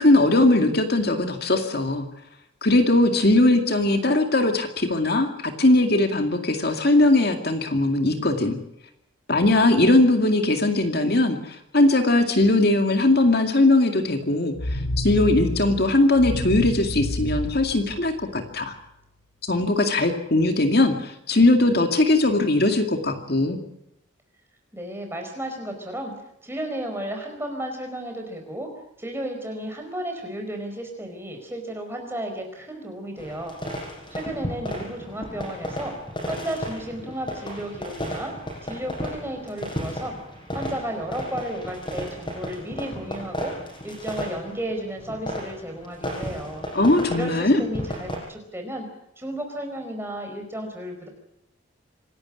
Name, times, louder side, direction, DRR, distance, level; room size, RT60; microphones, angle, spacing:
voice 1, 0.0-2.1 2.6-8.6 9.3-18.7 19.4-23.6 46.7-47.6, left 2 dB, 50° left, 5 dB, 2.2 m, -20 dB
sound 1, 14.6-18.6, left 1 dB, 90° left, 1.8 m, -30 dB
voice 2, 24.7-26.1 26.4-28.7 29.0-33.5 34.1-35.9 36.2-38.3 38.6-40.1 40.5-43.5 43.8-46.6 47.1-48.9 49.2-51.1, right 1 dB, 10° right, 3 dB, 4.8 m, -33 dB
sound 2, 33.2-48.2, equal, 25° left, 6.2 m, -34 dB
26.5 x 12.0 x 9.8 m, 0.82 s
head